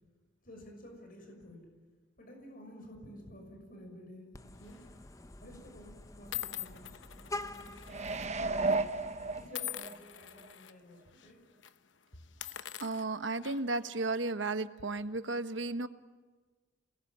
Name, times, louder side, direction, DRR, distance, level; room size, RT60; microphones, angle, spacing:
voice 1, 0.4-1.6 2.2-4.8 5.4-8.8 9.3-11.4, equal, 50° left, 3 dB, 6.2 m, -52 dB
Vehicle horn car horn honking, 4.3-9.5, left 2 dB, 15° left, 0.8 m, -47 dB
sound 1, 4.6-4.9 5.7-5.8 6.3-8.3 8.5-8.7 9.5-10.7 11.1-11.3 11.6-11.8 12.3-13.8, left 12 dB, 70° left, 0.9 m, -43 dB
sound 2, 7.9-10.0 10.4-10.5, right 3 dB, 35° right, 1.0 m, -33 dB
voice 2, 12.8-15.9, right 2 dB, 70° right, 11 dB, 1.2 m, -34 dB
28.5 x 20.5 x 10.0 m, 1.4 s
head